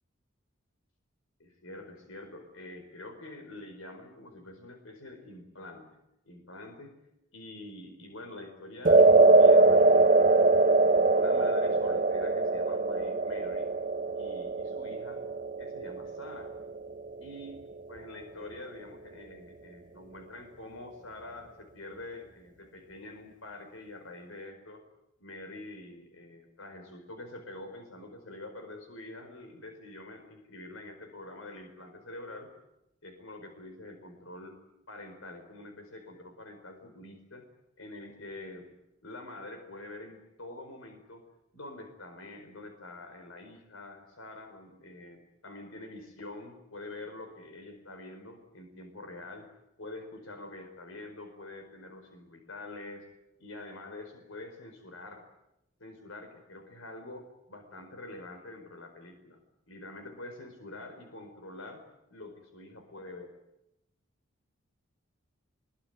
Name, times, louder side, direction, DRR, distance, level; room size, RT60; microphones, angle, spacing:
voice 1, 1.4-5.9 6.2-7.0 7.3-10.6 11.1-13.7 14.2-15.2 15.6-16.5 17.2-24.8 25.2-32.5 33.0-34.6 34.9-37.4 37.8-38.7 39.0-41.3 41.5-49.5 49.8-53.1 53.4-55.2 55.8-59.4 59.7-61.8 62.1-63.3, left 2 dB, 80° left, 5 dB, 4.6 m, -46 dB
sound 1, 8.8-17.2, right 3 dB, 40° right, 0.9 m, -22 dB
23.5 x 22.5 x 9.4 m, 0.86 s
head